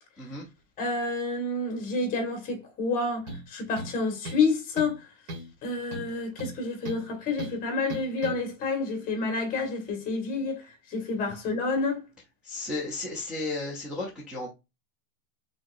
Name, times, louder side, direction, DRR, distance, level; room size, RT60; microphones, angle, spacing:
voice 1, 0.8-5.0 5.6-10.6 10.9-12.1, left 3 dB, 20° left, 1.6 m, -29 dB
sound 1, 3.3-3.5 3.8-4.5 4.8-5.0 5.3-5.5 5.9-7.1 7.4-7.6 7.9-8.4, right 1 dB, 35° right, 1.9 m, -38 dB
voice 2, 12.4-14.5, left 2 dB, ahead, 0.7 m, -34 dB
4.5 x 3.8 x 2.6 m
supercardioid pair, 160°, 41 cm